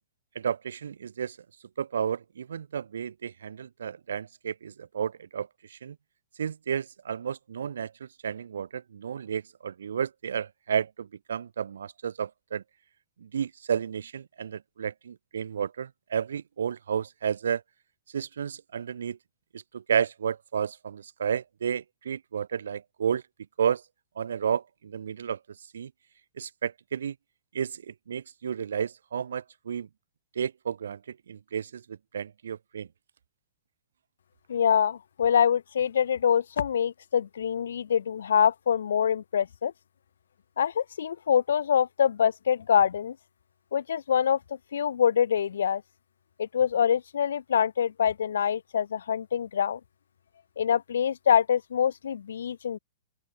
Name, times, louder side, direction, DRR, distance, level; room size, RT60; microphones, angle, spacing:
voice 1, 0.3-1.4 1.8-6.0 6.4-12.6 13.2-17.6 18.1-19.2 19.5-23.2 23.6-23.8 24.2-25.4 25.7-25.9 26.4-27.1 27.5-29.9 30.4-32.9, right 8 dB, 75° right, 2.6 m, -32 dB
voice 2, 34.5-39.7 40.6-43.2 43.7-44.4 44.7-45.8 46.4-49.8 50.6-52.8, left 8 dB, 75° left, 0.7 m, -25 dB
open air
hypercardioid pair, 125°, 0 cm